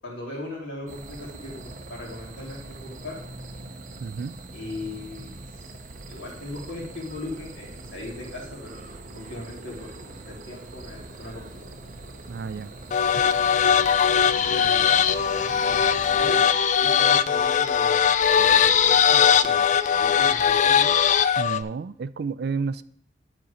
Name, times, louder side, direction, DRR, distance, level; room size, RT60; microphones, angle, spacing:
voice 1, 0.0-3.2 4.5-5.6 6.1-8.9 9.1-11.4 12.8-13.1 14.4-15.1 15.4-16.5 16.8-20.9, left 2 dB, 75° left, -3 dB, 2.9 m, -39 dB
sound 1, 0.9-16.5, right 2 dB, 45° right, 0.7 m, -42 dB
voice 2, 4.0-4.4 12.3-12.7 21.4-22.8, right 5 dB, 60° right, 15 dB, 0.3 m, -31 dB
sound 2, 12.9-21.6, left 8 dB, 40° left, 0.3 m, -20 dB
10.5 x 4.2 x 4.9 m, 0.65 s
head